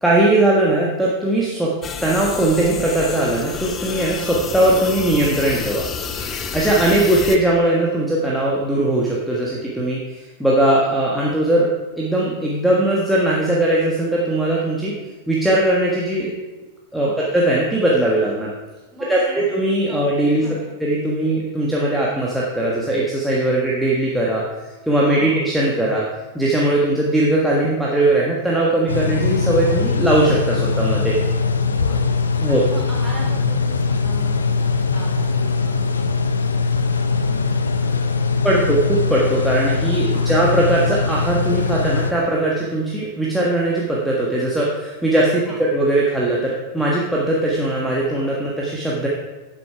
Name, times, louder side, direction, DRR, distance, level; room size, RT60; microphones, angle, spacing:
voice 1, 0.0-1.7 2.0-5.9 6.5-14.9 15.3-16.3 16.9-18.5 19.1-19.2 19.5-20.4 20.8-24.4 24.9-26.0 26.3-31.2 32.4-32.6 38.4-49.1, right 1 dB, ahead, -5 dB, 1.3 m, -19 dB
sound 1, 1.8-7.4, left 6 dB, 25° left, 0.8 m, -29 dB
voice 2, 18.9-19.5 19.9-20.0 20.4-20.6 25.1-25.3 31.7-32.0 32.5-36.3 36.7-36.9 37.2-38.6 40.1-40.3 45.4-45.6, right 1 dB, 20° right, -3 dB, 3.6 m, -39 dB
sound 2, 28.9-42.1, left 4 dB, 75° left, 0.6 m, -21 dB
9.0 x 7.6 x 4.7 m, 1.2 s
figure-of-eight pair, 90°, 0 cm